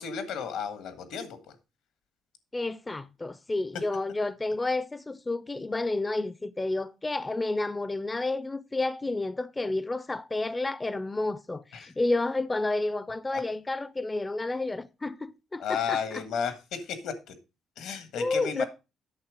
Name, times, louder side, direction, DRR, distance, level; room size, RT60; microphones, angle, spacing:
voice 1, 0.0-1.4 3.7-3.9 11.7-11.9 13.3-13.4 15.6-17.3 17.8-18.6, left 7 dB, 85° left, 1.5 m, -33 dB
voice 2, 2.5-16.2 18.2-18.6, left 2 dB, 15° left, 0.4 m, -30 dB
8.8 x 6.4 x 4.9 m
cardioid pair, 135°, 0 cm